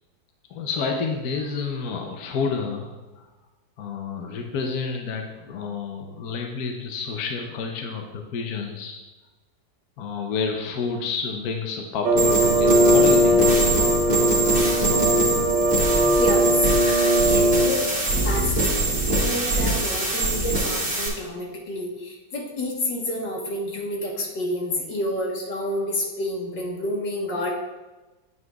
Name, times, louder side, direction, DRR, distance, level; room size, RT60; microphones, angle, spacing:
voice 1, 0.5-3.2 3.8-9.0 10.0-13.5, left 5 dB, 65° left, 2 dB, 1.2 m, -29 dB
sound 1, 12.0-17.7, equal, 80° right, 1.5 m, -20 dB
sound 2, 12.2-21.1, right 2 dB, 30° right, 2.2 m, -23 dB
voice 2, 16.1-27.5, left 1 dB, 80° left, -1 dB, 2.1 m, -29 dB
9.5 x 8.0 x 2.4 m, 1.1 s
omnidirectional pair, 1.9 m